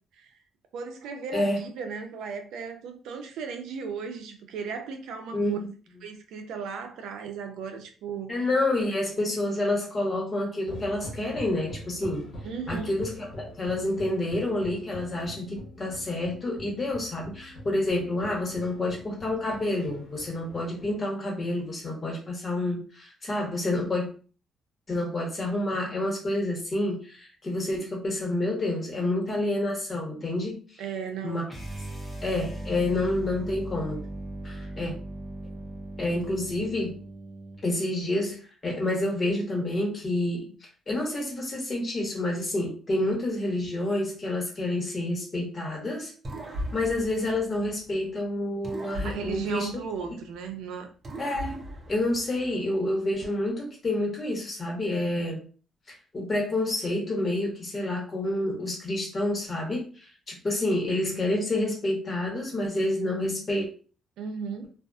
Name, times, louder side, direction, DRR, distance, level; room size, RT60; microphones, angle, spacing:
voice 1, 0.7-5.6 6.0-8.5 12.4-13.0 30.8-31.5 49.0-50.9 64.2-64.7, right 6 dB, 85° right, 0.5 m, -36 dB
voice 2, 8.3-12.3 12.7-24.1 24.9-30.6 31.2-31.4 32.2-34.0 34.4-34.9 36.0-37.0 37.6-40.5 40.9-46.1 46.7-49.7 51.2-55.4 55.9-63.7, left 1 dB, 35° left, 1.2 m, -28 dB
sound 1, 10.6-21.0, equal, 80° left, 0.9 m, -44 dB
sound 2, 31.5-37.6, right 1 dB, ahead, 0.8 m, -38 dB
sound 3, 46.2-48.1 48.6-50.5 51.0-52.8, equal, 40° right, 0.6 m, -39 dB
2.5 x 2.4 x 2.3 m
cardioid pair, 90°, 0 cm